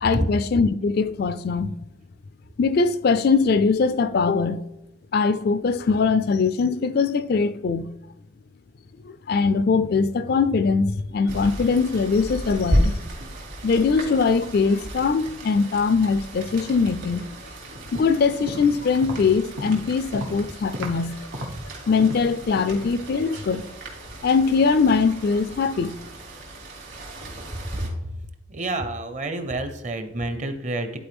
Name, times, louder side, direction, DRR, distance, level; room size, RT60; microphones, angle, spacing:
voice 1, 0.0-1.7 2.6-4.6 5.1-7.9 9.0-12.9 13.6-17.2 17.9-21.1 21.9-23.7 24.2-25.9, left 4 dB, 50° left, 0.3 m, -21 dB
Rain, 11.3-27.9, equal, 65° right, 2.7 m, -33 dB
sound 1, 18.3-21.1 21.3-22.4 22.7-23.1 23.3-23.5, equal, 85° right, 1.2 m, -35 dB
voice 2, 28.5-31.0, right 1 dB, 35° right, 0.7 m, -28 dB
11.0 x 4.4 x 3.5 m
head